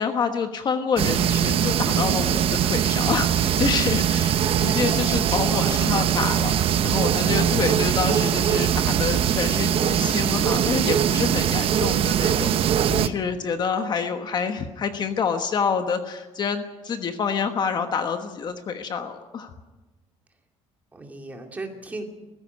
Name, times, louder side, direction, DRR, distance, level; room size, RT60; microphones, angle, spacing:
voice 1, 0.0-19.5, left 6 dB, 35° left, 7 dB, 1.2 m, -27 dB
sound 1, 1.0-13.1, right 9 dB, 50° right, 0.9 m, -22 dB
voice 2, 5.2-6.4 20.9-22.0, right 2 dB, 10° right, 3 dB, 2.4 m, -37 dB
18.5 x 15.5 x 9.5 m, 1.1 s
cardioid pair, 175°, 12 cm